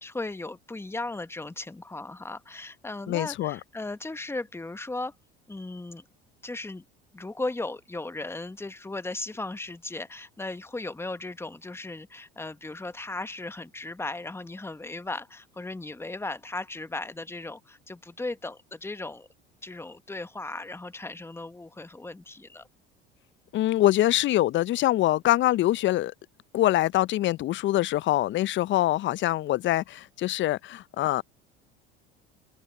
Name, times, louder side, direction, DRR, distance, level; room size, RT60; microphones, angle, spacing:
voice 1, 0.0-5.1 5.5-6.0 6.4-6.8 7.1-19.3 19.6-22.7, left 2 dB, 10° left, 1.4 m, -36 dB
voice 2, 3.1-3.6 23.5-26.1 26.5-31.2, left 15 dB, 40° left, 0.6 m, -24 dB
hypercardioid pair, 70°, 30 cm